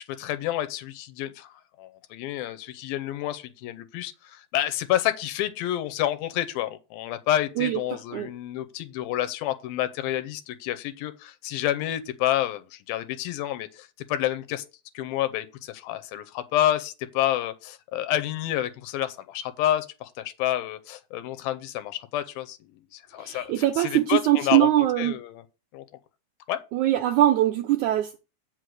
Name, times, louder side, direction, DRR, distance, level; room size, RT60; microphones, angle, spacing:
voice 1, 0.1-14.6 14.9-22.6 22.9-24.7 25.0-25.4 25.7-25.8 26.5-26.6, left 13 dB, 90° left, 2.6 m, -29 dB
voice 2, 23.2-25.2 26.7-28.2, right 13 dB, 80° right, 1.7 m, -22 dB
7.7 x 5.5 x 6.5 m
omnidirectional pair, 4.2 m